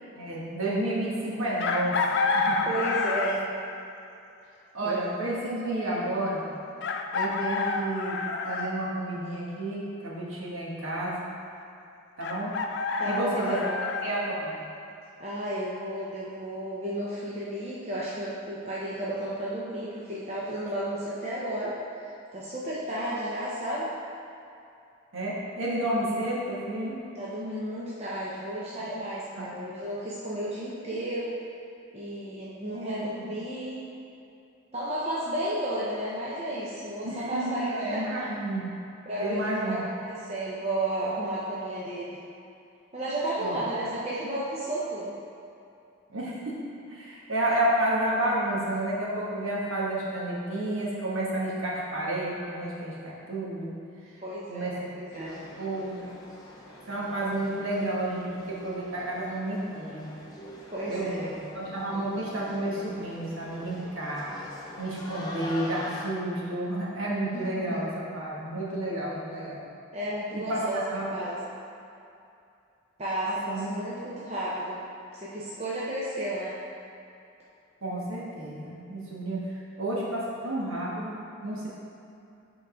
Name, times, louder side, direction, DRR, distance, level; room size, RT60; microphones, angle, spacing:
voice 1, 0.1-2.0 2.3-2.7 4.7-6.4 7.1-8.2 8.4-11.3 12.2-12.5 13.0-13.5 14.0-14.5 25.1-27.0 28.8-28.9 29.3-29.5 32.7-33.0 37.0-38.8 39.2-39.8 43.4-43.6 46.1-46.6 46.9-53.7 54.5-56.1 56.9-60.1 60.9-64.3 64.8-69.6 70.3-70.6 70.9-71.2 73.3-73.7 77.8-79.4 79.8-81.1 81.4-81.7, right 1 dB, 70° right, -6 dB, 1.5 m, -31 dB
Chicken rooster, 1.6-3.5 5.2-5.3 6.8-8.7 12.2-14.1, left 4 dB, 50° left, 0.4 m, -28 dB
voice 2, 2.6-3.5 4.8-5.0 13.0-13.8 15.2-21.7 22.3-23.9 27.2-31.4 31.9-33.8 34.7-38.0 39.1-42.2 42.9-45.1 54.2-55.4 60.7-61.3 61.9-62.0 67.3-67.8 69.9-70.8 71.1-71.4 73.0-74.8 75.1-76.6, right 1 dB, 30° right, -8 dB, 0.8 m, -33 dB
sound 1, 55.1-66.0, left 1 dB, 20° left, 0.7 m, -44 dB
7.2 x 3.9 x 5.0 m, 2.6 s
head